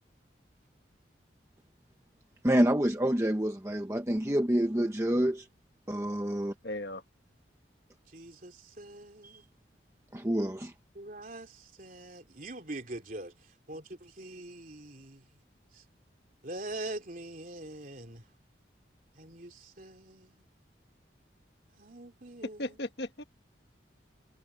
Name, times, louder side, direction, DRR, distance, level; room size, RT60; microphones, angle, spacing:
voice 1, 2.4-5.4 5.9-6.5 9.2-9.3 10.1-10.7, right 1 dB, 15° right, 0.9 m, -27 dB
voice 2, 6.6-7.0 22.6-23.2, left 1 dB, 65° left, 1.5 m, -36 dB
voice 3, 8.1-9.5 10.9-13.3 13.7-15.2 15.7-15.8 16.4-18.2 19.2-20.4 21.8-22.9, right 2 dB, 45° right, 3.4 m, -43 dB
head